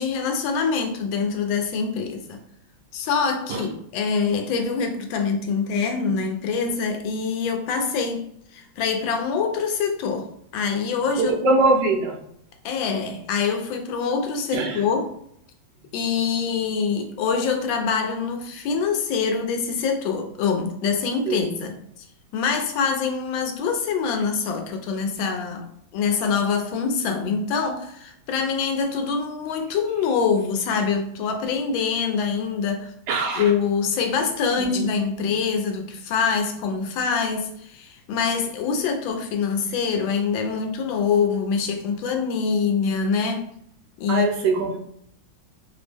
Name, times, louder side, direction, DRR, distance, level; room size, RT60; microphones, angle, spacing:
voice 1, 0.0-2.4 2.9-11.3 12.6-15.1 15.9-22.0 22.3-25.7 25.9-32.9 33.4-43.5 44.0-44.3 44.7-44.8, left 5 dB, 80° left, 1.3 m, -25 dB
voice 2, 11.2-12.2 14.5-14.8 21.3-21.4 33.1-33.5 34.6-34.8 44.1-44.8, right 3 dB, 75° right, 1.1 m, -22 dB
3.4 x 2.0 x 3.2 m
omnidirectional pair, 2.2 m